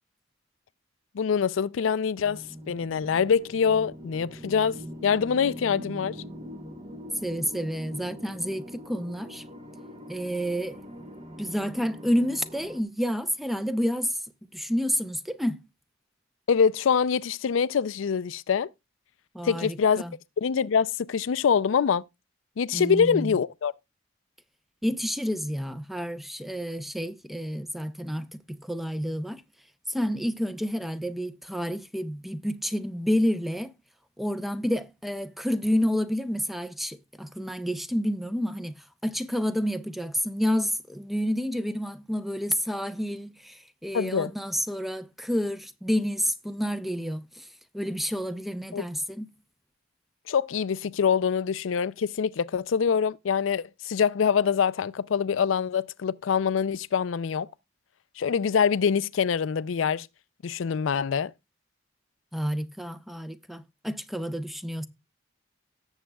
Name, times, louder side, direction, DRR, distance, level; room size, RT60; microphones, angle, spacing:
voice 1, 1.1-6.2 16.5-18.7 19.4-20.0 20.4-22.0 22.6-23.7 43.9-44.3 48.7-48.8 50.3-57.5 58.2-60.1 60.4-61.3, left 6 dB, 80° left, 0.4 m, -25 dB
sound 1, 2.2-12.8, equal, 35° right, 1.0 m, -43 dB
voice 2, 7.2-9.4 10.1-10.8 11.4-14.2 14.5-15.6 19.3-20.1 22.7-23.4 24.8-29.4 29.9-33.7 34.2-47.5 47.7-49.3 62.3-64.9, equal, ahead, 0.5 m, -29 dB
17.5 x 7.2 x 2.3 m
head